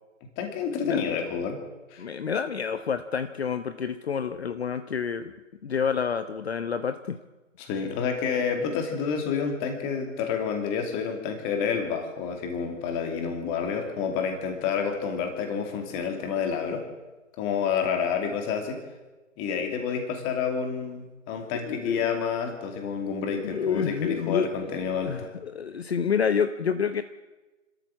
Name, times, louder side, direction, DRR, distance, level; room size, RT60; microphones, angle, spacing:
voice 1, 0.4-1.6 1.9-2.1 7.6-16.8 17.4-18.8 19.4-25.3, left 6 dB, 15° left, 4 dB, 2.4 m, -29 dB
voice 2, 2.0-5.3 5.6-7.2 21.7-22.1 23.4-24.7 25.0-27.0, left 6 dB, 50° left, 10 dB, 1.0 m, -28 dB
26.5 x 13.0 x 7.4 m, 1.1 s
figure-of-eight pair, 150°, 39 cm